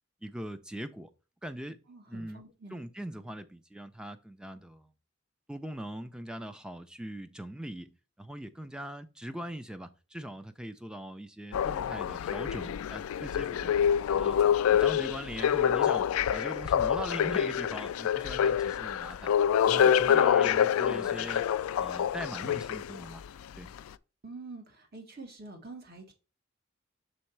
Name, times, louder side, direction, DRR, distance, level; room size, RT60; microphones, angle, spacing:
voice 1, 0.2-1.1 1.4-1.8 2.1-2.4 2.7-4.9 5.5-7.9 8.2-14.4 14.7-19.3 19.7-21.4 21.8-23.2 23.6-23.7, right 1 dB, 5° right, 0.4 m, -41 dB
voice 2, 1.9-2.8 20.1-21.3 24.2-26.1, right 3 dB, 45° right, 1.5 m, -46 dB
sound 1, 11.5-23.1 23.8-23.9, left 9 dB, 85° left, 0.3 m, -26 dB
6.4 x 3.9 x 4.5 m
head